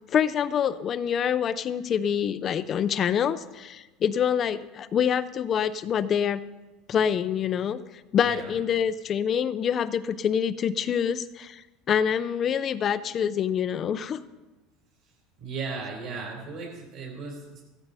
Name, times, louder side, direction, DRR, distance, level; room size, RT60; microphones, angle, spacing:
voice 1, 0.1-6.4 6.9-7.8 8.1-14.2, left 8 dB, 25° left, 14 dB, 0.5 m, -26 dB
voice 2, 15.4-17.6, right 4 dB, 45° right, 0 dB, 3.7 m, -36 dB
15.5 x 13.5 x 4.1 m, 1.1 s
cardioid pair, 170°, 0 cm